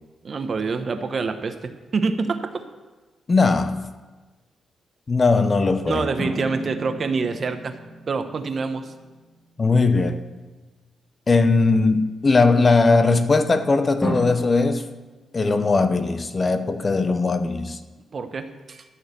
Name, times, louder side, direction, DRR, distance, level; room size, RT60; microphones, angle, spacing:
voice 1, 0.2-2.6 5.9-7.7 8.1-8.9 18.1-18.8, right 4 dB, 45° right, 1.0 m, -26 dB
voice 2, 3.3-3.8 5.1-6.1 9.6-10.2 11.3-14.9 15.3-17.8, left 3 dB, 35° left, 0.8 m, -19 dB
sound 1, 6.2-9.1 14.0-14.3, equal, 10° left, 2.4 m, -32 dB
13.0 x 6.4 x 8.1 m
cardioid pair, 105°, 0 cm